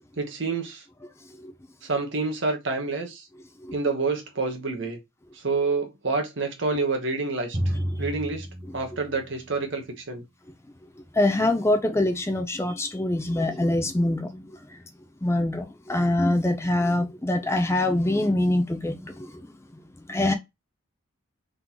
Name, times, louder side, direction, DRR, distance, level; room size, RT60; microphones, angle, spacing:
voice 1, 0.2-0.8 1.8-3.3 3.7-5.0 5.3-8.5 8.7-10.2, right 3 dB, 60° right, 1.1 m, -28 dB
Drum, 7.5-9.9, equal, 25° right, 1.0 m, -31 dB
voice 2, 11.1-14.5 15.2-19.4 20.1-20.3, left 1 dB, 10° left, 0.4 m, -24 dB
3.8 x 3.8 x 2.9 m
head